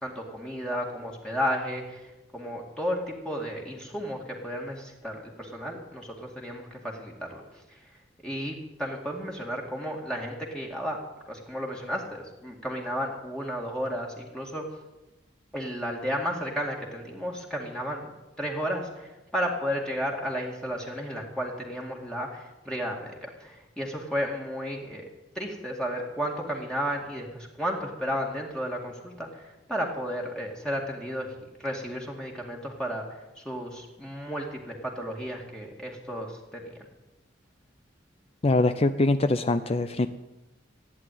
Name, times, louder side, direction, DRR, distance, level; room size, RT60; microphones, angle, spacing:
voice 1, 0.0-7.4 7.7-7.8 8.2-11.0 11.3-14.6 15.5-25.1 25.3-36.7, equal, 5° left, -1 dB, 2.2 m, -33 dB
voice 2, 38.4-40.1, left 2 dB, 30° left, 10 dB, 0.5 m, -23 dB
15.5 x 9.9 x 9.3 m, 1.0 s
head